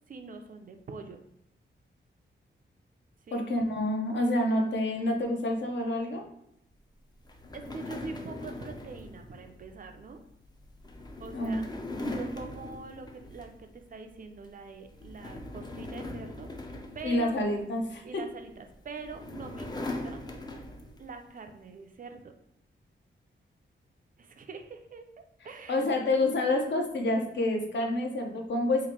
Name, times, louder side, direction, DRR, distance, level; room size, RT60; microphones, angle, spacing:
voice 1, 0.1-1.2 3.3-3.5 7.5-10.2 11.2-11.6 12.1-17.4 18.0-20.2 21.0-22.3 24.2-25.1 25.4-25.9, right 4 dB, 45° right, 6 dB, 0.4 m, -44 dB
voice 2, 3.3-6.2 11.3-11.6 11.9-12.1 17.0-18.2 25.7-28.9, left 1 dB, 65° left, 3 dB, 0.6 m, -28 dB
sound 1, 7.2-13.8 14.2-14.4 14.9-17.9 18.7-21.1, left 2 dB, 20° left, 0.4 m, -41 dB
2.9 x 2.5 x 4.2 m, 0.77 s
wide cardioid pair, 165°, 20 cm